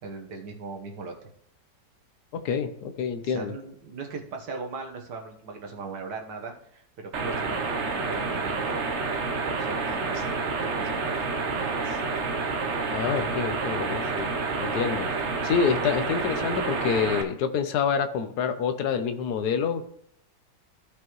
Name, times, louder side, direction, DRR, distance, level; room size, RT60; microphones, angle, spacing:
voice 1, 0.0-1.3 3.2-8.8 9.4-11.1 11.5-12.0, right 4 dB, 80° right, 2 dB, 1.8 m, -39 dB
voice 2, 2.3-3.5 12.9-15.1 15.4-19.8, left 6 dB, 75° left, 9 dB, 1.3 m, -27 dB
sound 1, 7.1-17.2, right 4 dB, 50° right, 1.0 m, -29 dB
15.0 x 5.3 x 3.1 m, 0.70 s
omnidirectional pair, 1.8 m